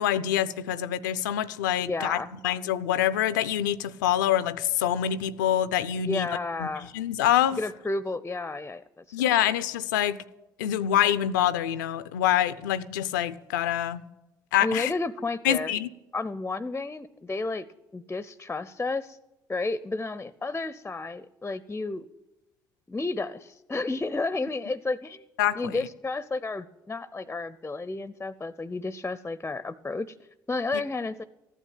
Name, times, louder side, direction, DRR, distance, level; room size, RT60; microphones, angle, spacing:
voice 1, 0.0-2.2 2.4-6.3 6.6-6.7 6.9-7.6 9.1-10.2 10.6-14.0 14.5-14.9 15.4-15.9 25.4-25.9, left 11 dB, 85° left, 0.5 m, -25 dB
voice 2, 1.9-2.3 6.0-6.9 7.6-9.2 14.6-15.7 16.1-17.7 17.9-19.2 19.5-22.1 22.9-25.2 25.6-30.1 30.5-31.2, left 3 dB, 15° left, 0.6 m, -32 dB
14.5 x 9.1 x 9.0 m
hypercardioid pair, 60°, 10 cm